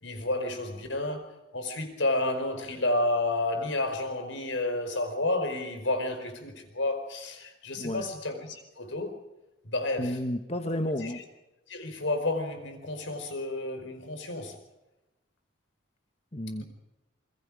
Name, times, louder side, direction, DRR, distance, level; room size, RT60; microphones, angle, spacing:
voice 1, 0.0-9.1 9.6-10.2 11.0-11.1 11.7-14.6, left 2 dB, 70° left, 4.9 m, -31 dB
voice 2, 7.7-8.1 10.0-11.2 16.3-16.6, left 1 dB, 30° left, 1.3 m, -31 dB
28.0 x 22.5 x 5.0 m
head